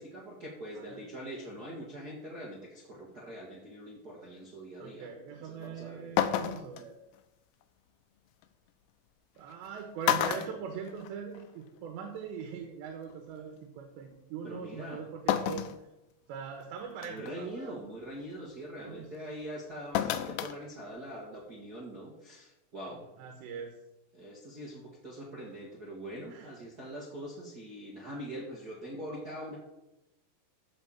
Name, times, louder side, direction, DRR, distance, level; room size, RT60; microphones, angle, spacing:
voice 1, 0.0-6.2 14.4-15.0 17.0-23.0 24.1-29.6, right 1 dB, 65° right, -4 dB, 0.9 m, -43 dB
voice 2, 4.8-7.0 9.4-15.7 16.3-17.8 18.8-19.1 23.2-23.7 26.3-26.5, right 6 dB, 85° right, 3 dB, 3.5 m, -41 dB
sound 1, 5.6-5.7 6.2-6.8 8.4-8.5 9.5-9.7 10.0-11.4 11.8-11.9 13.1-13.2 15.3-15.8 16.3-16.4 17.0-17.3 19.9-20.6 20.9-21.0, left 11 dB, 80° left, 2.8 m, -30 dB
14.0 x 4.6 x 7.3 m, 0.93 s
omnidirectional pair, 4.9 m